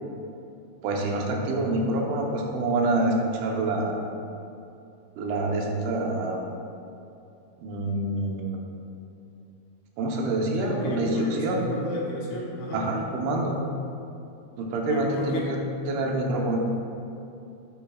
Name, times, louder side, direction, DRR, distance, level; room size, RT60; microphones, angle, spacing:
voice 1, 0.8-4.0 5.2-6.4 7.6-8.6 10.0-11.6 12.7-13.6 14.6-15.6 15.9-16.6, right 2 dB, 85° right, 0 dB, 3.4 m, -26 dB
voice 2, 10.5-12.8 14.9-15.5, left 1 dB, 80° left, -6 dB, 1.4 m, -31 dB
10.0 x 8.9 x 2.4 m, 2.7 s
omnidirectional pair, 5.2 m